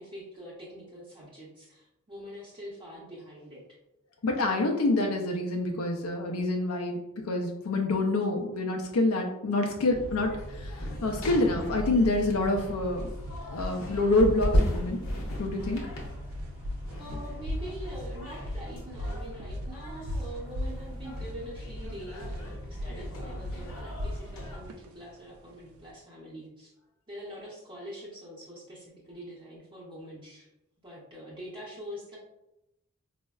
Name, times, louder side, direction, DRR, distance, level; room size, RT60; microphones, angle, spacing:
voice 1, 0.0-3.6 16.9-26.7 27.1-30.5 30.8-32.2, equal, 20° right, -7 dB, 0.6 m, -44 dB
voice 2, 4.2-13.1 13.5-15.0 15.4-15.8 17.1-17.2, left 2 dB, 85° left, 1 dB, 0.4 m, -27 dB
sound 1, 9.9-24.6, equal, 65° left, 0.8 m, -35 dB
sound 2, 12.8-25.9, left 1 dB, 70° right, 0.3 m, -39 dB
4.3 x 2.0 x 2.3 m, 0.93 s
head